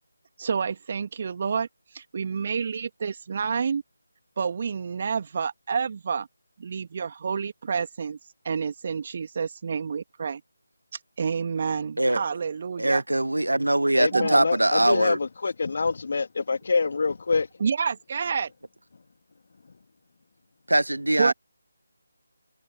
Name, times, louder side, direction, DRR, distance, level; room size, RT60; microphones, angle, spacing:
voice 1, 0.4-1.7 1.9-3.8 4.4-6.3 6.6-8.2 8.4-10.4 11.2-13.0 14.1-14.4 17.6-18.5 21.2-21.3, right 6 dB, 35° right, 2.4 m, -29 dB
voice 2, 12.8-15.2 20.7-21.3, right 1 dB, 75° right, 0.9 m, -22 dB
voice 3, 14.0-17.5, left 4 dB, 45° left, 2.6 m, -25 dB
figure-of-eight pair, 155°, 0 cm